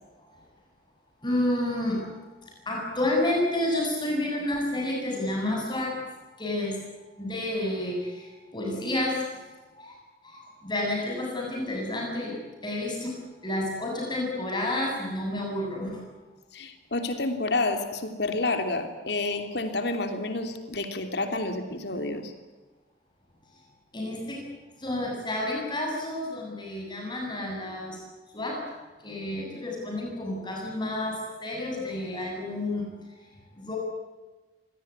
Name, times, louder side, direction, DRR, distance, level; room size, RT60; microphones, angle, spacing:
voice 1, 1.2-2.0 2.7-6.0 6.4-6.8 7.2-8.2 8.5-9.2 9.8-9.9 10.3-12.3 12.6-13.1 13.4-15.9 23.9-24.4 24.8-28.0 28.3-28.6 29.0-32.9 33.6-33.8, left 1 dB, 25° left, -1 dB, 7.8 m, -30 dB
voice 2, 16.5-22.3, left 2 dB, 70° left, 6 dB, 3.1 m, -29 dB
26.0 x 18.5 x 9.7 m, 1.2 s
head